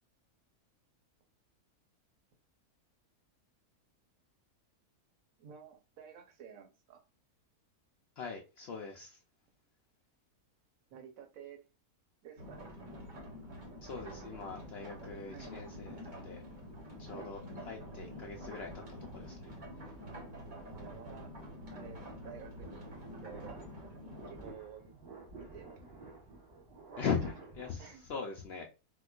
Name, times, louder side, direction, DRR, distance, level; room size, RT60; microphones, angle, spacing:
voice 1, 5.4-7.0 10.9-11.6 12.2-12.7 15.3-15.6 17.1-17.4 20.7-21.3 21.7-22.9 23.2-23.6 24.2-24.9 25.3-25.8 27.2-27.3 27.8-28.1, right 8 dB, 65° right, 1.2 m, -51 dB
voice 2, 8.2-9.2 13.8-16.4 17.0-19.5 27.0-28.7, left 6 dB, 85° left, 0.5 m, -40 dB
sound 1, 12.4-24.5, equal, 35° right, 0.9 m, -47 dB
sound 2, 13.6-15.1 15.6-27.7, right 2 dB, 90° right, 2.0 m, -54 dB
4.3 x 2.2 x 2.3 m
omnidirectional pair, 1.6 m